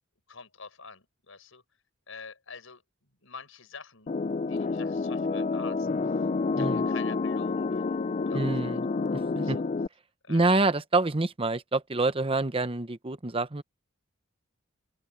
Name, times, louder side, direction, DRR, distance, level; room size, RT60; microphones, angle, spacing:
voice 1, 0.3-1.6 2.1-2.8 3.2-4.1 4.4-5.9 6.6-8.0 8.3-8.8 9.3-9.6 10.2-10.6, left 5 dB, 75° left, 5.7 m, -46 dB
sound 1, 4.1-9.9, left 4 dB, 35° left, 0.4 m, -29 dB
voice 2, 8.3-8.9 9.1-9.6 10.3-13.6, right 2 dB, 25° right, 0.9 m, -27 dB
open air
head